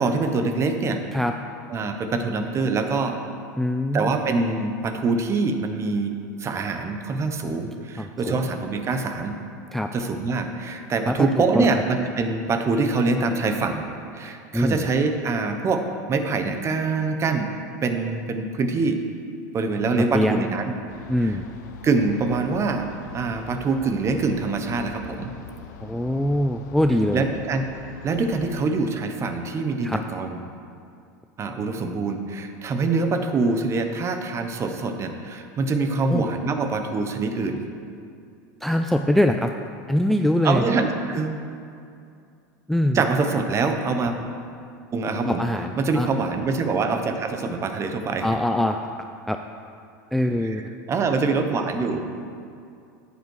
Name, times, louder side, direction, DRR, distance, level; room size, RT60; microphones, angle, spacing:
voice 1, 0.0-1.0 1.7-3.2 3.9-6.1 6.4-9.3 9.9-13.8 14.1-15.8 16.1-17.5 17.8-19.0 19.5-20.7 21.2-21.3 21.8-22.9 23.1-25.3 27.1-27.7 28.0-30.4 31.4-37.6 40.4-41.4 42.9-44.1 44.9-45.4 45.8-48.3 50.4-50.5 50.9-52.0, right 4 dB, 30° right, 6 dB, 1.0 m, -24 dB
voice 2, 3.6-4.1 8.0-8.4 9.7-9.9 11.1-11.3 11.5-11.7 14.5-14.9 20.0-20.5 21.1-21.4 25.8-27.2 29.8-30.0 36.1-36.3 38.6-39.5 39.9-40.6 42.7-43.0 45.3-46.1 48.2-48.8 49.3-49.4 50.1-50.6, left 1 dB, ahead, 5 dB, 0.3 m, -23 dB
sound 1, 20.9-28.6, left 6 dB, 80° left, 0.8 m, -43 dB
9.5 x 8.3 x 4.7 m, 2.4 s
supercardioid pair, 110°, 9 cm